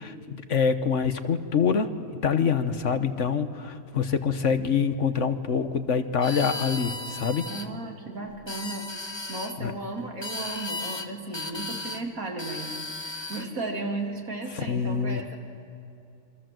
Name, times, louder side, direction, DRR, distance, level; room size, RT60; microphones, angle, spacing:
voice 1, 0.0-7.5 9.6-9.7 14.5-15.2, left 6 dB, 55° left, 10 dB, 1.4 m, -26 dB
sound 1, 6.2-7.7 8.3-9.5 10.2-11.1 11.3-12.0 12.4-13.5, left 2 dB, 20° left, 1.1 m, -35 dB
voice 2, 7.5-8.9 9.3-12.7 13.3-15.4, right 2 dB, 70° right, 2 dB, 3.3 m, -34 dB
27.5 x 24.5 x 7.7 m, 2.7 s
omnidirectional pair, 1.5 m